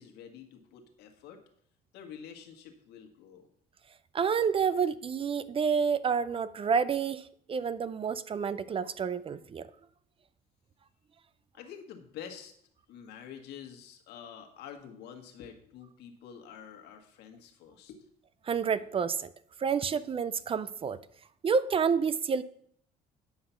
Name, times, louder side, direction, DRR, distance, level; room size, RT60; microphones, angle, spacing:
voice 1, 0.0-1.4 1.9-3.5 11.5-12.5 12.9-18.1, left 8 dB, 80° left, 1.7 m, -47 dB
voice 2, 4.1-9.7 18.5-19.3 19.6-21.0 21.4-22.4, right 6 dB, 35° right, 0.5 m, -29 dB
9.6 x 5.8 x 5.7 m
cardioid pair, 110°, 17 cm